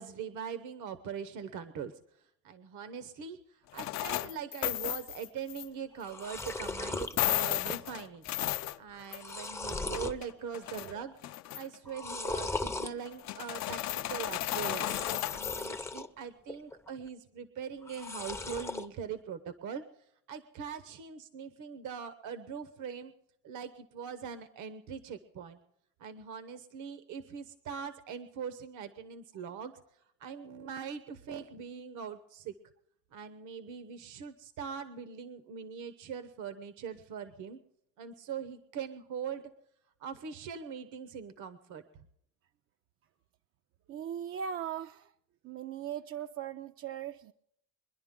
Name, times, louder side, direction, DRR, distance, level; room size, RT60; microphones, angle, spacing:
voice 1, 0.0-8.3 8.8-11.1 11.5-14.9 15.3-19.8 20.3-23.1 23.4-25.6 26.0-29.7 30.2-32.5 33.1-37.6 38.0-39.5 40.0-41.8, right 7 dB, 75° right, 11 dB, 1.0 m, -42 dB
sound 1, 3.7-5.7 6.4-6.5 7.0-9.4 9.7-10.9 11.2-11.8 13.1-15.7, left 14 dB, 60° left, 0.5 m, -34 dB
sound 2, 5.6-5.7 5.9-7.1 7.6-8.0 8.3-8.4 8.9-10.2 10.7-11.1 11.9-12.9 14.7-16.1 16.5-17.1 17.8-18.9, left 3 dB, 10° left, 0.5 m, -38 dB
voice 2, 43.9-45.1 45.4-47.3, right 9 dB, 45° right, 9 dB, 0.4 m, -39 dB
23.0 x 11.0 x 3.7 m, 0.73 s
cardioid pair, 160°, 31 cm